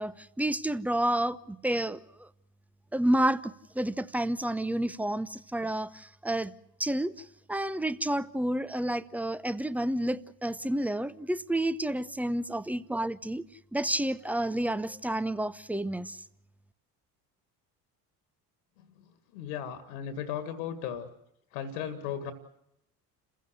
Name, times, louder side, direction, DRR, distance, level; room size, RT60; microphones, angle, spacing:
voice 1, 0.0-2.3 2.9-6.5 6.8-13.4 13.7-16.2, right 1 dB, 5° right, 0.9 m, -30 dB
voice 2, 19.3-21.1 21.5-22.3, left 8 dB, 65° left, 2.0 m, -36 dB
29.0 x 15.5 x 8.0 m
figure-of-eight pair, 60°, 47 cm